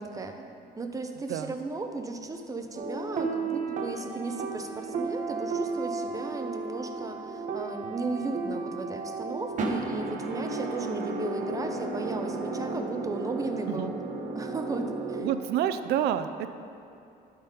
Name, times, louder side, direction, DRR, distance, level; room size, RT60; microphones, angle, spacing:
voice 1, 0.0-13.9 14.3-15.3, right 3 dB, 20° right, 5 dB, 0.7 m, -35 dB
sound 1, 2.7-15.2, right 3 dB, 50° right, 1.0 m, -33 dB
voice 2, 15.2-16.5, right 10 dB, 75° right, 11 dB, 0.5 m, -28 dB
12.0 x 4.1 x 5.2 m, 2.6 s
cardioid pair, 110°, 17 cm